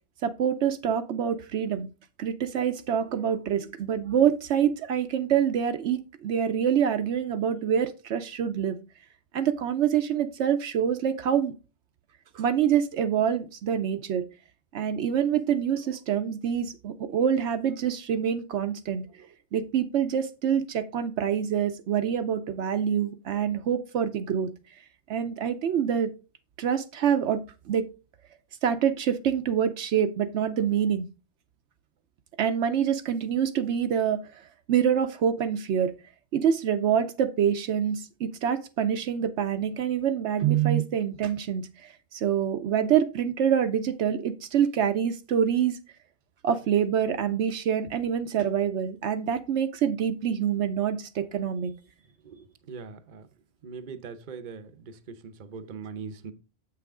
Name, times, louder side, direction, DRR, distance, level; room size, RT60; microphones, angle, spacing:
voice 1, 0.2-1.9 2.2-8.8 9.3-11.5 12.3-14.3 14.7-24.5 25.1-26.1 26.6-27.4 27.7-27.9 28.6-31.1 32.4-34.2 34.7-35.9 36.3-45.8 46.4-51.7, right 8 dB, 75° right, 0.9 m, -26 dB
voice 2, 52.2-53.3 53.6-56.3, right 5 dB, 45° right, 0.8 m, -41 dB
7.7 x 5.8 x 3.6 m
omnidirectional pair, 1.2 m